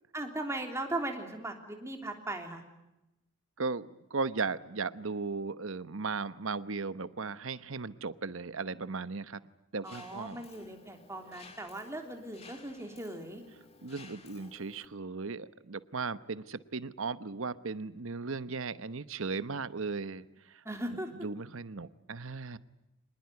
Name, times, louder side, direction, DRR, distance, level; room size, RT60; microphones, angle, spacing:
voice 1, 0.1-2.6 9.8-13.4 20.6-21.1, right 1 dB, 15° right, 4 dB, 3.2 m, -38 dB
voice 2, 3.6-9.4 9.7-10.4 13.8-20.6 20.9-22.6, right 4 dB, 70° right, 15 dB, 1.0 m, -37 dB
Mechanisms, 9.8-14.9, left 4 dB, 30° left, 2.7 m, -55 dB
25.5 x 20.5 x 9.4 m, 0.92 s
head